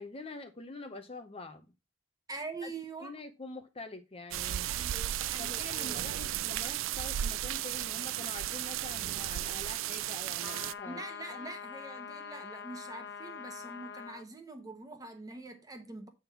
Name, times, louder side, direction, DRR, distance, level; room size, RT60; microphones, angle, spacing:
voice 1, 0.0-1.7 2.6-2.7 3.0-4.7 5.4-11.0, left 3 dB, 30° left, 0.7 m, -45 dB
voice 2, 2.3-3.1 4.7-6.0 10.9-16.1, right 3 dB, 20° right, 1.1 m, -44 dB
sound 1, 4.3-10.7, right 12 dB, 80° right, 0.3 m, -34 dB
sound 2, 10.4-14.3, left 6 dB, 55° left, 1.2 m, -44 dB
8.7 x 3.6 x 5.8 m
head